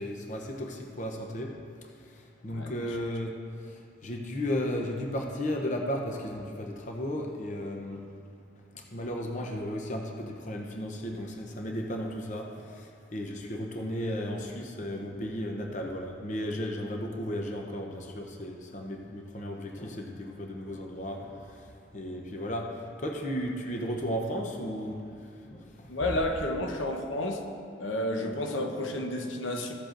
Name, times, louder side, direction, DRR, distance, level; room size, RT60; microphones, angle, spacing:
voice 1, 0.0-1.5 2.0-8.1 8.7-25.2 25.4-25.9, equal, 40° left, 1 dB, 0.8 m, -35 dB
voice 2, 25.9-27.4 27.8-29.7, left 1 dB, 85° left, 2 dB, 1.0 m, -31 dB
15.0 x 7.6 x 2.6 m, 2.4 s
head